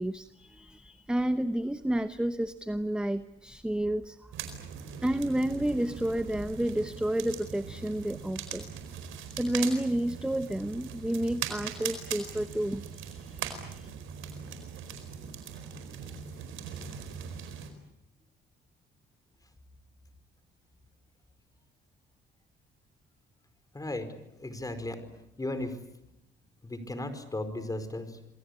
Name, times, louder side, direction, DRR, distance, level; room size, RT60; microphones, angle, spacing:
voice 1, 0.0-4.2 5.0-8.7 9.4-13.9, right 1 dB, 5° right, 11 dB, 0.9 m, -30 dB
sound 1, 4.3-17.7, right 8 dB, 90° right, 4.6 m, -40 dB
voice 2, 23.7-25.8 26.6-28.2, left 1 dB, 20° left, 10 dB, 4.8 m, -36 dB
28.0 x 22.5 x 8.4 m, 0.86 s
cardioid pair, 90°, 20 cm